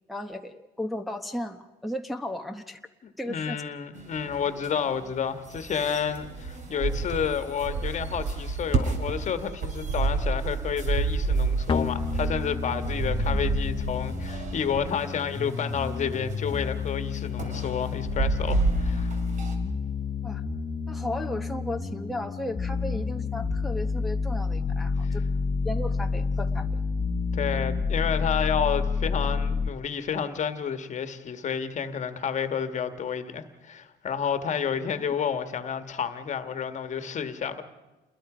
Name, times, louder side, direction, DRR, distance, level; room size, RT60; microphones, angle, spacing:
voice 1, 0.1-2.8 3.2-3.6 13.1-13.5 20.2-20.4 20.9-25.2 25.6-26.7, left 1 dB, ahead, 1.0 m, -35 dB
voice 2, 3.3-19.2 27.3-37.6, left 7 dB, 45° left, 1.6 m, -30 dB
sound 1, 3.9-19.5, right 3 dB, 45° right, 3.1 m, -30 dB
sound 2, 11.7-29.7, left 5 dB, 30° left, 1.1 m, -29 dB
28.0 x 21.5 x 5.0 m
cardioid pair, 110°, 17 cm